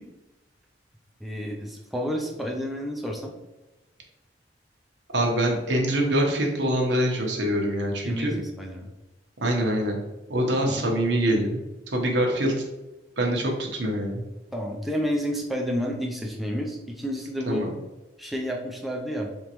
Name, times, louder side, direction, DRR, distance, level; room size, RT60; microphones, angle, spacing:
voice 1, 1.2-3.3 8.0-8.9 10.6-10.9 14.5-17.7 18.2-19.3, equal, ahead, -1 dB, 0.4 m, -30 dB
voice 2, 5.1-8.3 9.4-10.0 10.3-11.6 11.9-12.5 13.2-14.2 17.5-17.7, right 1 dB, 75° right, 0 dB, 1.0 m, -24 dB
3.8 x 3.6 x 3.0 m, 1.0 s
head